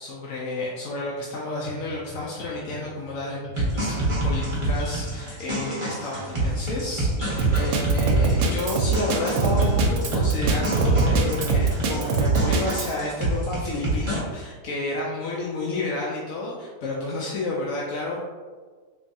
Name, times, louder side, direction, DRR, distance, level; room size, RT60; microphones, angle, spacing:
voice 1, 0.0-18.2, left 2 dB, 70° left, -5 dB, 0.8 m, -31 dB
sound 1, 1.6-11.2, equal, 55° left, 1.1 m, -42 dB
sound 2, 3.6-14.2, right 1 dB, 25° right, 0.8 m, -27 dB
Drum kit, 7.4-12.9, right 4 dB, 75° right, 1.1 m, -22 dB
3.4 x 3.0 x 2.6 m, 1.5 s
omnidirectional pair, 1.8 m